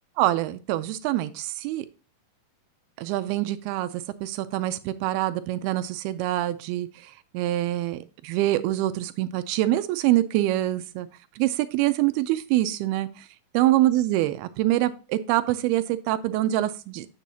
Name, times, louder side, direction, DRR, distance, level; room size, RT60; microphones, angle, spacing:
voice 1, 0.2-1.9 3.0-11.1 11.4-13.3 13.5-17.1, right 15 dB, 90° right, 11 dB, 2.5 m, -25 dB
8.3 x 7.0 x 2.7 m, 0.33 s
omnidirectional pair, 4.4 m